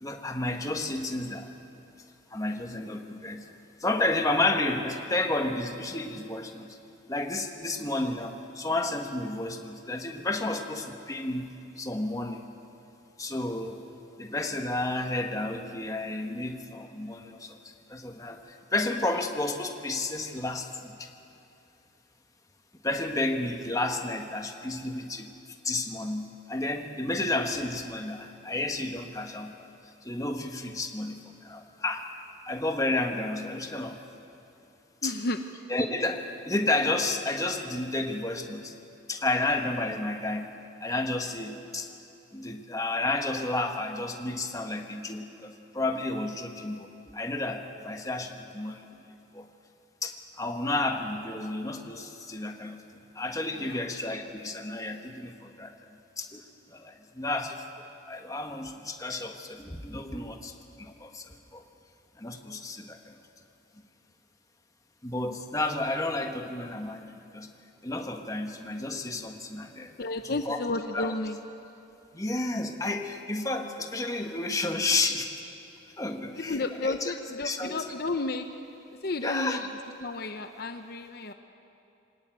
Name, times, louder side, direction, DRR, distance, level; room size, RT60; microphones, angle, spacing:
voice 1, 0.0-1.5 2.3-6.7 7.1-12.4 13.2-13.8 14.2-21.1 22.8-25.3 25.6-29.7 30.0-32.0 32.5-34.0 35.0-35.1 35.7-38.7 39.1-40.5 40.8-41.9 42.3-48.9 49.3-49.5 50.0-52.8 53.1-55.7 56.2-56.4 56.7-60.5 60.8-61.6 62.2-63.2 65.0-67.5 67.8-69.9 70.2-70.6 70.9-71.1 72.1-75.3 76.0-77.1 77.4-77.9 79.2-79.7, left 2 dB, 20° left, 4 dB, 1.4 m, -31 dB
voice 2, 35.0-35.4 53.6-53.8 70.0-71.4 76.4-78.5 79.0-79.6 80.0-81.3, left 2 dB, 55° left, 7 dB, 0.9 m, -32 dB
23.5 x 19.0 x 9.1 m, 2.7 s
head